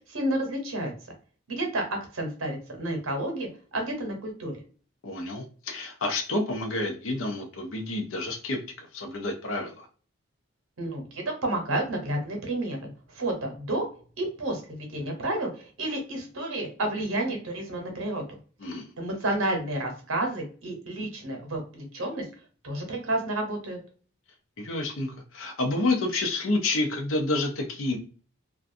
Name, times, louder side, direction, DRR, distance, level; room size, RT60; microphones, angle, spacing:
voice 1, 0.1-0.9 1.5-4.5 10.8-13.8 14.2-18.2 18.7-22.2 22.6-23.8, right 1 dB, 75° right, 2 dB, 0.8 m, -30 dB
voice 2, 5.0-9.9 18.6-18.9 24.6-28.0, left 2 dB, 70° left, 3 dB, 0.6 m, -29 dB
2.4 x 2.2 x 2.5 m, 0.39 s
head